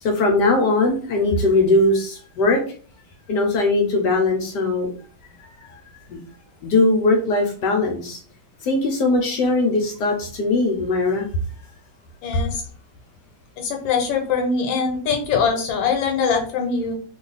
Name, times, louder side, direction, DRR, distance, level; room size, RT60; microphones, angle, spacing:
voice 1, 0.0-2.6 3.3-4.9 5.5-5.7 6.1-6.2 6.6-8.2 8.6-11.3, left 2 dB, 70° left, 2 dB, 1.2 m, -20 dB
voice 2, 12.2-12.6 13.6-16.9, left 5 dB, 90° left, 3 dB, 1.4 m, -22 dB
3.0 x 2.3 x 3.9 m, 0.43 s
omnidirectional pair, 2.1 m